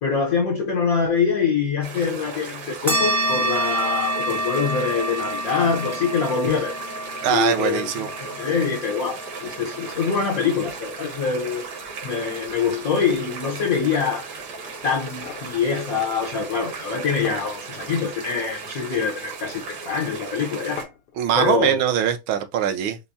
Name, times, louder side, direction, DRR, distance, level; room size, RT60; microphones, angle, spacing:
voice 1, 0.0-6.8 7.3-11.6 12.0-14.3 14.8-20.8 21.3-21.8, left 5 dB, 65° left, 0.9 m, -24 dB
sound 1, 1.8-20.8, right 4 dB, 60° right, 1.4 m, -36 dB
sound 2, 2.9-11.8, equal, 25° right, 0.3 m, -28 dB
voice 2, 7.2-8.1 21.2-23.0, right 9 dB, 75° right, 1.4 m, -22 dB
sound 3, 15.2-15.5 16.8-16.9 17.3-18.0 18.7-19.2 20.8-21.2, left 6 dB, 80° left, 1.8 m, -40 dB
5.8 x 2.0 x 2.6 m
omnidirectional pair, 2.4 m